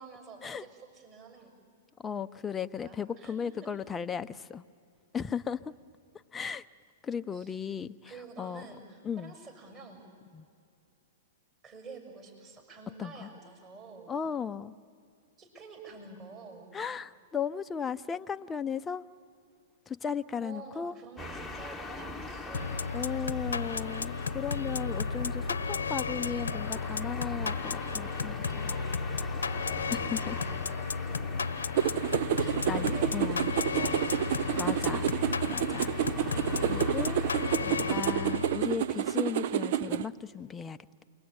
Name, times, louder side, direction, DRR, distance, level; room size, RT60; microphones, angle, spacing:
voice 1, 0.0-1.5 2.8-3.7 7.3-7.5 8.0-10.1 11.6-14.2 15.4-16.7 20.4-22.9 31.0-31.1 32.5-33.2 33.5-34.2 37.4-37.9, right 4 dB, 25° right, 2 dB, 6.6 m, -48 dB
voice 2, 2.0-4.6 5.1-5.7 6.3-6.6 7.0-8.1 8.4-8.7 9.0-9.3 10.3-10.5 13.0-13.3 14.1-14.7 16.7-19.0 19.9-21.0 22.9-28.4 28.6-28.8 29.9-30.4 32.4-33.6 34.6-35.1 35.5-36.0 36.3-41.0, left 7 dB, 15° left, 11 dB, 0.7 m, -36 dB
sound 1, 21.2-38.0, left 2 dB, ahead, 1.3 m, -43 dB
sound 2, 22.5-38.8, left 5 dB, 90° left, 1.0 m, -33 dB
sound 3, 31.8-40.0, right 10 dB, 60° right, 0.7 m, -29 dB
29.0 x 22.0 x 8.9 m, 2.4 s
hypercardioid pair, 120°, 0 cm